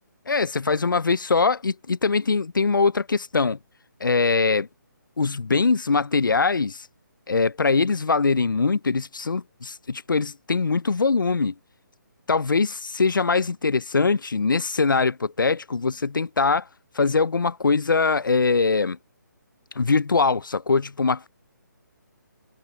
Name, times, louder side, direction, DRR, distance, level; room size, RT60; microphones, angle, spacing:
voice 1, 0.3-3.6 4.0-4.7 5.2-6.9 7.3-11.5 12.3-16.6 16.9-19.0 19.7-21.3, left 4 dB, 80° left, 0.8 m, -22 dB
figure-of-eight pair, 150°, 11 cm